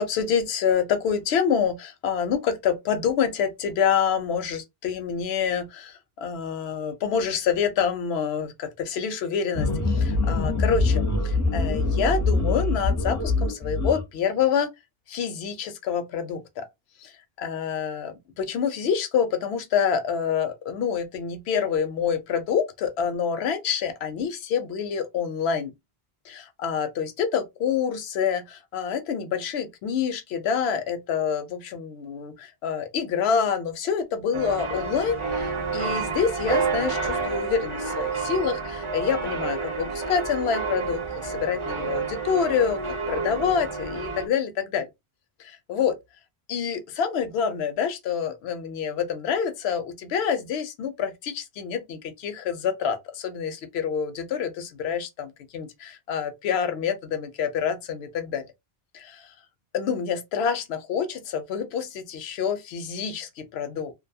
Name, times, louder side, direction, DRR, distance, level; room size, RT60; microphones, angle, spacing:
voice 1, 0.0-14.7 15.1-16.7 17.0-25.7 26.3-42.8 43.1-44.9 45.4-46.0 46.5-58.5 58.9-59.3 59.7-63.9, left 7 dB, 85° left, 0.8 m, -27 dB
sound 1, 9.5-14.0, left 3 dB, 20° left, 0.5 m, -24 dB
sound 2, 34.3-44.3, right 5 dB, 40° right, 0.4 m, -29 dB
2.6 x 2.2 x 2.6 m
omnidirectional pair, 1.0 m